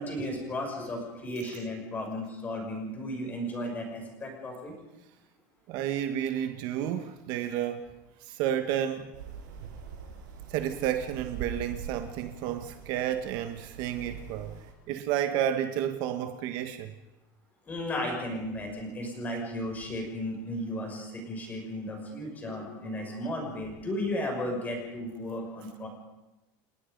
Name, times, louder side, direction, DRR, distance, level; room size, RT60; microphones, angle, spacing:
voice 1, 0.0-4.7 17.7-25.9, left 1 dB, 15° left, 6.3 m, -34 dB
voice 2, 5.7-7.9 8.2-9.1 10.5-14.6 14.9-16.9, right 10 dB, 45° right, 1.3 m, -31 dB
sound 1, 9.1-14.7, right 7 dB, 80° right, 7.0 m, -43 dB
30.0 x 19.0 x 5.3 m
cardioid pair, 175°, 10 cm